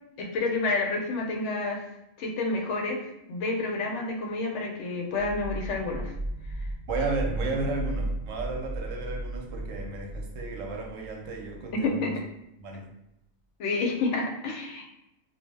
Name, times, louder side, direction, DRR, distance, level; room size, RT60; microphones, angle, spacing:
voice 1, 0.2-1.8 2.2-3.0 3.3-6.1 11.8-12.2 13.6-14.9, left 3 dB, 75° left, 0 dB, 0.9 m, -29 dB
sound 1, 5.2-11.9, right 1 dB, 60° right, 0.9 m, -35 dB
voice 2, 6.9-12.1 12.6-12.9, right 3 dB, 85° right, 1 dB, 0.9 m, -33 dB
2.3 x 2.0 x 3.2 m, 0.84 s
omnidirectional pair, 1.3 m